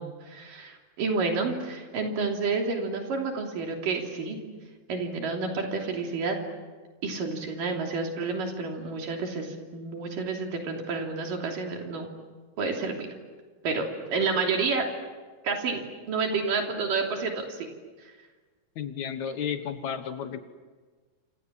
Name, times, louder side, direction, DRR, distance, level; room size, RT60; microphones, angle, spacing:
voice 1, 0.0-4.4 4.9-6.4 7.0-12.1 12.6-13.1 13.6-14.9 15.4-17.7, right 4 dB, 80° right, 2 dB, 4.8 m, -30 dB
voice 2, 18.8-20.4, left 8 dB, 65° left, 9 dB, 2.5 m, -32 dB
29.0 x 26.5 x 7.5 m, 1.4 s
omnidirectional pair, 3.8 m